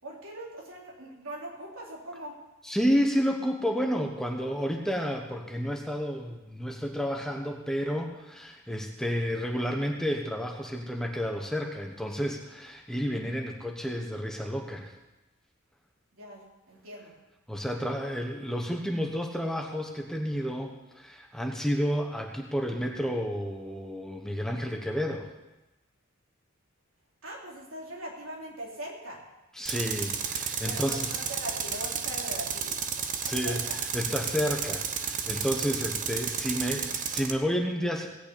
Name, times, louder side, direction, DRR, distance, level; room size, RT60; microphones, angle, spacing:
voice 1, 0.0-2.4 16.1-17.1 27.2-29.2 30.6-33.8, right 1 dB, 70° right, -2 dB, 3.5 m, -41 dB
voice 2, 2.6-14.9 17.5-25.3 29.6-31.1 33.2-33.6 33.9-38.1, equal, 5° left, 1 dB, 1.1 m, -31 dB
Tools, 29.7-37.3, right 7 dB, 40° right, 0.9 m, -32 dB
17.0 x 5.8 x 8.5 m, 1.0 s
head